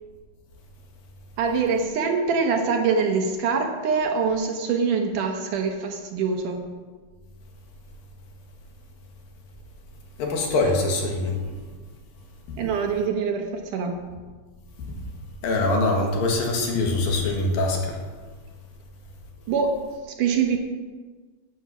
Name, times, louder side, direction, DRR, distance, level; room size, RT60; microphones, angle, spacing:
voice 1, 1.4-6.7 12.6-14.0 19.5-19.8 20.0-20.6, right 5 dB, 70° right, 4 dB, 2.3 m, -24 dB
voice 2, 10.2-11.4 12.5-12.6 14.8-15.0 15.4-18.0, left 2 dB, 75° left, 1 dB, 3.5 m, -23 dB
11.0 x 8.9 x 6.0 m, 1.4 s
omnidirectional pair, 4.2 m